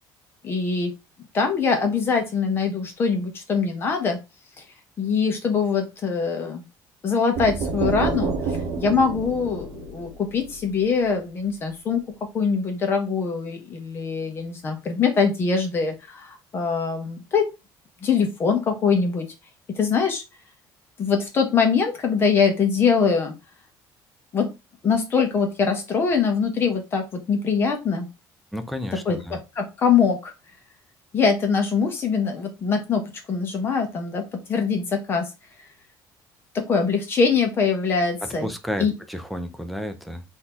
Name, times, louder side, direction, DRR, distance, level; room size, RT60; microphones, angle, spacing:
voice 1, 0.4-0.9 1.3-4.2 5.0-6.6 7.0-8.3 8.8-12.0 12.3-17.5 18.0-19.3 19.8-20.2 21.0-23.3 24.3-24.5 24.8-28.1 29.1-30.3 31.1-33.0 33.3-34.2 34.5-35.3 36.5-38.5 38.8-38.9, left 5 dB, 30° left, 1.0 m, -23 dB
sound 1, 7.4-11.1, right 4 dB, 50° right, 0.9 m, -29 dB
voice 2, 28.5-29.4 38.4-40.2, equal, ahead, 0.5 m, -31 dB
4.0 x 2.8 x 4.2 m
cardioid pair, 170°, 8 cm